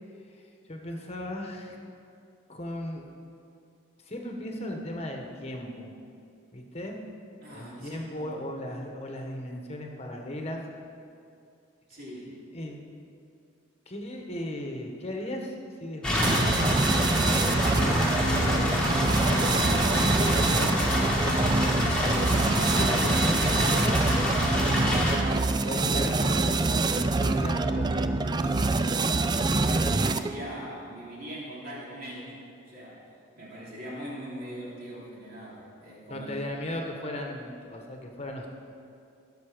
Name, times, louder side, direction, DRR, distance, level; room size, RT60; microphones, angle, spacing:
voice 1, 0.7-1.8 2.5-3.1 4.0-5.9 6.5-7.0 7.5-10.6 12.5-12.8 13.9-15.5 15.8-16.6 17.5-20.9 21.5-24.0 24.8-28.5 36.1-38.5, left 1 dB, 30° left, 1 dB, 1.2 m, -37 dB
voice 2, 7.4-8.3 11.9-12.3 29.6-32.3 32.7-33.0 33.4-36.3, equal, 45° right, -6 dB, 3.2 m, -41 dB
sound 1, 16.0-25.2, left 1 dB, 5° left, 1.6 m, -27 dB
sound 2, 16.2-30.4, right 3 dB, 20° right, 0.3 m, -25 dB
16.0 x 6.9 x 5.1 m, 2.5 s
head